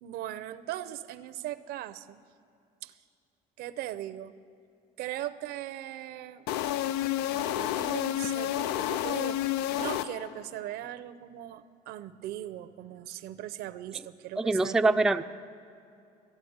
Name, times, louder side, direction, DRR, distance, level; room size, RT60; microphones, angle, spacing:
voice 1, 0.0-2.2 2.8-2.9 3.6-4.3 5.0-6.4 7.3-15.3, right 13 dB, 75° right, 13 dB, 0.6 m, -39 dB
sound 1, 6.5-10.5, left 12 dB, 90° left, 0.4 m, -30 dB
voice 2, 14.4-15.3, right 2 dB, 5° right, 7 dB, 0.4 m, -24 dB
14.5 x 9.2 x 7.9 m, 2.5 s
cardioid pair, 110°, 16 cm